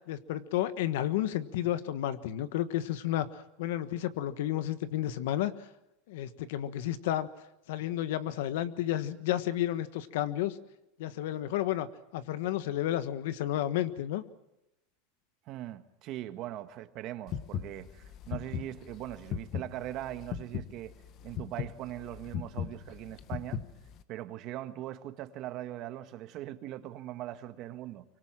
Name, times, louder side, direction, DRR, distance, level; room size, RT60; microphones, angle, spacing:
voice 1, 0.1-5.5 6.1-7.3 7.7-10.6 11.0-11.9 12.1-14.2, left 12 dB, 75° left, 1.4 m, -31 dB
voice 2, 15.5-20.9 21.2-23.6 24.1-28.0, right 13 dB, 50° right, 1.7 m, -40 dB
sound 1, 17.3-24.0, left 9 dB, 45° left, 1.5 m, -37 dB
24.5 x 24.5 x 7.6 m
supercardioid pair, 130°, 0 cm